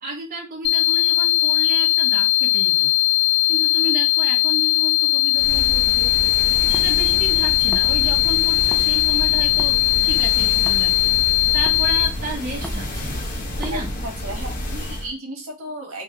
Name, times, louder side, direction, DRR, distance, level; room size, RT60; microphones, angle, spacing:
voice 1, 0.0-2.9 3.5-13.9, right 2 dB, 40° right, 0.8 m, -32 dB
sound 1, 0.6-12.1, left 20 dB, 85° left, 0.6 m, -19 dB
sound 2, 5.3-15.1, left 1 dB, 40° left, 1.0 m, -29 dB
sound 3, 6.4-8.9 9.1-13.8, left 1 dB, 5° left, 0.4 m, -38 dB
voice 2, 13.7-16.0, right 1 dB, 75° right, 1.4 m, -34 dB
3.3 x 2.2 x 3.7 m
head